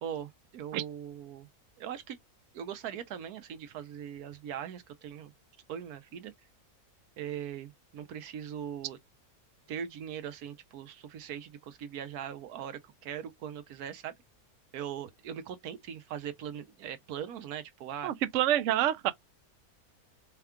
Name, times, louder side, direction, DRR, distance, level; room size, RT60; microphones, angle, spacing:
voice 1, 0.0-1.5 1.8-2.2 2.5-5.3 5.7-6.3 7.2-9.0 9.7-14.1 14.7-18.1, right 9 dB, 80° right, 1.2 m, -40 dB
voice 2, 18.0-19.1, right 12 dB, 65° right, 0.8 m, -27 dB
4.5 x 2.3 x 3.5 m
omnidirectional pair, 1.6 m